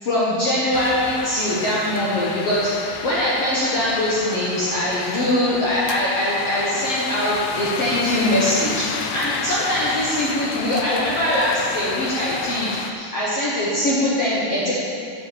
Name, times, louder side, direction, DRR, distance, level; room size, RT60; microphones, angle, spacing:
voice 1, 0.0-8.9 9.1-14.7, left 1 dB, 60° left, -8 dB, 1.6 m, -22 dB
sound 1, 0.7-12.9, left 6 dB, 80° left, 2.6 m, -31 dB
10.5 x 6.5 x 8.4 m, 2.4 s
omnidirectional pair, 5.0 m